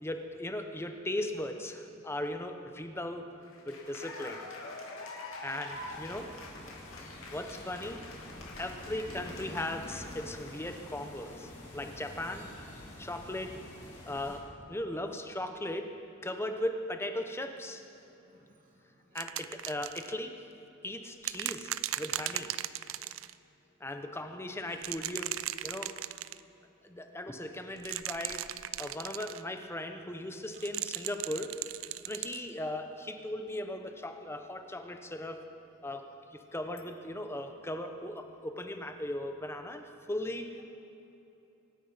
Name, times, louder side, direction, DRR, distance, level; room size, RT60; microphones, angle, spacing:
voice 1, 0.0-3.3 3.6-4.4 5.4-6.3 7.3-8.0 8.6-12.5 13.0-13.5 14.1-15.9 16.2-17.8 19.1-20.4 20.8-22.5 23.8-25.3 25.6-25.9 26.8-28.4 28.8-31.6 32.1-35.4 35.8-36.0 36.3-40.5, left 1 dB, 10° left, 6 dB, 1.0 m, -38 dB
Cheering / Applause, 3.4-11.0, left 2 dB, 75° left, 2.4 m, -46 dB
sound 1, 5.7-14.4, left 1 dB, 35° left, 4.0 m, -47 dB
voice 2, 8.8-9.3 16.4-16.5 17.9-19.2 22.8-22.9 27.1-27.2 30.6-30.7, right 3 dB, 40° right, 0 dB, 2.4 m, -61 dB
sound 2, 19.2-20.1 21.2-23.3 24.7-26.4 27.8-29.4 30.5-32.4 33.5-33.6, right 14 dB, 70° right, 0.4 m, -37 dB
25.0 x 9.4 x 5.7 m, 2.9 s
head